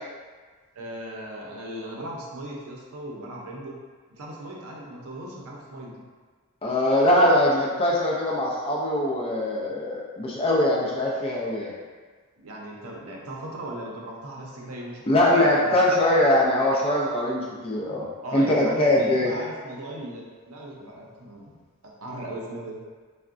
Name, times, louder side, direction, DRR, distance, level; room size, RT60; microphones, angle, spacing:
voice 1, 0.8-3.8 4.1-6.0 12.4-15.8 18.2-20.2 20.5-21.5 22.0-22.8, right 1 dB, 80° right, -2 dB, 0.6 m, -37 dB
voice 2, 6.6-11.7 15.1-19.3, left 1 dB, 25° left, -3 dB, 0.4 m, -22 dB
3.5 x 2.1 x 2.4 m, 1.5 s
head